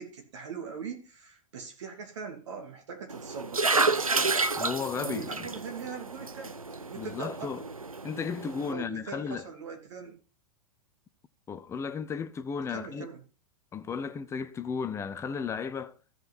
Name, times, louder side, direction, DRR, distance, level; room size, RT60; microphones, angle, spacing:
voice 1, 0.0-4.4 4.9-7.5 8.7-10.2 12.7-13.2, right 6 dB, 60° right, 3.0 m, -41 dB
sound 1, 3.1-8.7, right 3 dB, 90° right, 0.5 m, -30 dB
voice 2, 4.6-5.5 7.0-7.6 8.0-9.5 11.5-13.1 13.7-15.9, left 6 dB, 15° left, 0.7 m, -34 dB
15.0 x 5.5 x 4.3 m
figure-of-eight pair, 95°, 17 cm